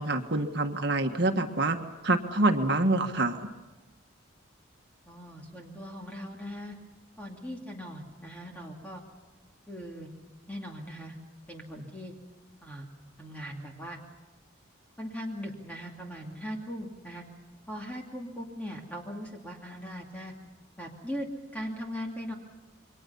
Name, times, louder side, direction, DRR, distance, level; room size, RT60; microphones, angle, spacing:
voice 1, 0.0-1.8 2.0-3.5, right 2 dB, 55° right, 5 dB, 1.7 m, -26 dB
voice 2, 5.1-6.8 7.2-9.0 9.7-10.1 10.5-11.2 11.5-12.1 12.6-12.9 13.2-14.0 15.0-17.2 17.7-20.3 20.8-21.3 21.5-22.3, equal, 5° left, 0 dB, 2.5 m, -39 dB
29.0 x 23.5 x 5.7 m, 1.2 s
head